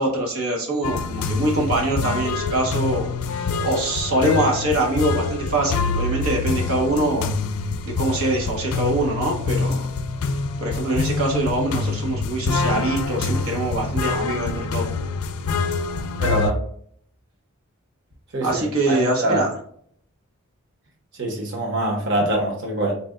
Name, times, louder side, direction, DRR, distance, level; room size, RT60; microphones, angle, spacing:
voice 1, 0.0-7.4 7.9-9.8 10.6-14.9 18.4-19.5, right 1 dB, 85° right, 0 dB, 1.0 m, -24 dB
sound 1, 0.8-16.5, left 4 dB, 80° left, 0.4 m, -26 dB
voice 2, 16.2-16.6 18.3-19.5 21.1-22.9, right 1 dB, 60° right, 0 dB, 1.0 m, -24 dB
4.2 x 2.2 x 3.7 m, 0.62 s
head